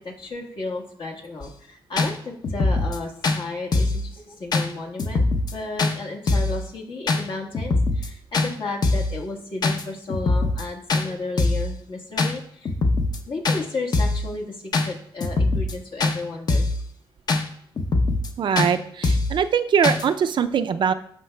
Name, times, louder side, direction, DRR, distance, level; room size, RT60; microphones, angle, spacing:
voice 1, 0.0-5.2 5.5-12.7 13.3-16.7, left 3 dB, 65° left, 0 dB, 1.4 m, -33 dB
sound 1, 1.4-1.5 2.0-2.1 2.4-3.0 3.2-3.4 3.7-4.0 4.5-4.7 5.0-5.5 5.8-5.9 6.3-6.6 7.1-7.2 7.5-8.1 8.3-8.5 8.8-9.1 9.6-9.8 10.1-10.6 10.9-11.0 11.4-11.7 12.2-12.3 12.7-13.2 13.4-13.6 13.9-14.2 14.7-14.9 15.2-15.7 16.0-16.2 16.5-16.8 17.3-17.4 17.8-18.3 18.6-18.7 19.0-19.3 19.8-20.0, left 3 dB, 50° left, 0.7 m, -22 dB
voice 2, 18.4-20.9, right 7 dB, 60° right, 10 dB, 0.4 m, -22 dB
12.0 x 5.0 x 2.2 m, 0.64 s
cardioid pair, 105°, 9 cm